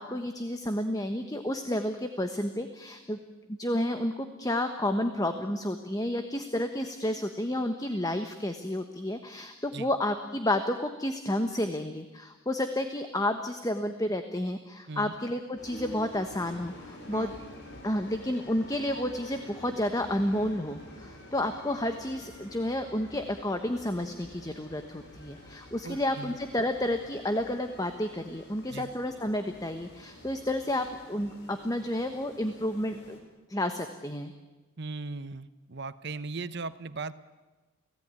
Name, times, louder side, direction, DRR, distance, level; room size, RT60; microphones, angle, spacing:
voice 1, 0.0-3.2 3.5-17.3 17.8-33.2 33.5-34.3, left 1 dB, 15° left, 7 dB, 1.1 m, -31 dB
sound 1, 15.6-33.2, left 1 dB, 50° left, 5.3 m, -49 dB
voice 2, 25.8-26.4 28.7-28.9 34.8-37.1, right 3 dB, 50° right, 14 dB, 0.9 m, -38 dB
29.5 x 17.5 x 9.7 m, 1.2 s
head